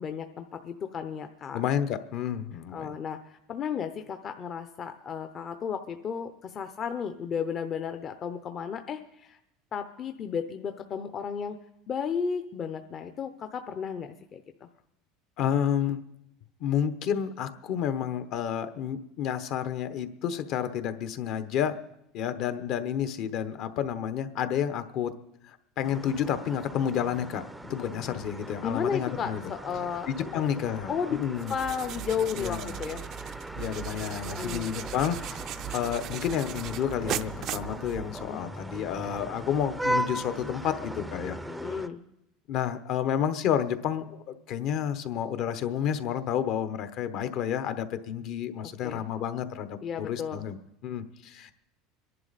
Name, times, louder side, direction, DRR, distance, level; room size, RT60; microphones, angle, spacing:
voice 1, 0.0-1.6 2.7-9.4 9.7-11.6 11.9-14.4 28.6-30.4 30.9-31.2 31.5-33.0 34.2-34.7 38.2-38.4 41.5-42.0 48.8-49.0 49.8-50.4, left 7 dB, 35° left, 7 dB, 0.7 m, -33 dB
voice 2, 1.5-2.9 15.4-16.0 16.6-21.7 22.1-25.1 25.4-29.4 30.1-31.5 32.3-32.8 33.6-41.4 42.5-50.6 50.8-51.5, left 9 dB, 55° left, 10 dB, 1.0 m, -30 dB
sound 1, 25.8-41.9, right 1 dB, 5° right, 0.5 m, -38 dB
sound 2, 31.4-38.4, right 12 dB, 50° right, 0.5 m, -38 dB
25.0 x 11.0 x 4.1 m, 0.81 s
supercardioid pair, 130°, 0 cm